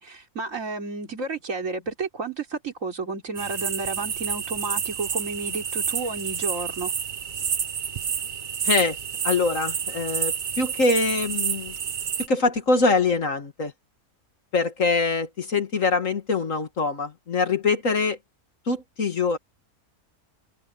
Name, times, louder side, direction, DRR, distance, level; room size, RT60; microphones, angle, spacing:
voice 1, 0.0-6.9, right 3 dB, 60° right, 3.8 m, -31 dB
sound 1, 3.4-12.3, right 7 dB, 45° right, 0.7 m, -29 dB
voice 2, 8.6-9.0 9.2-11.7 12.3-13.7 14.5-18.2 18.7-19.4, left 3 dB, 60° left, 2.2 m, -23 dB
omnidirectional pair, 1.5 m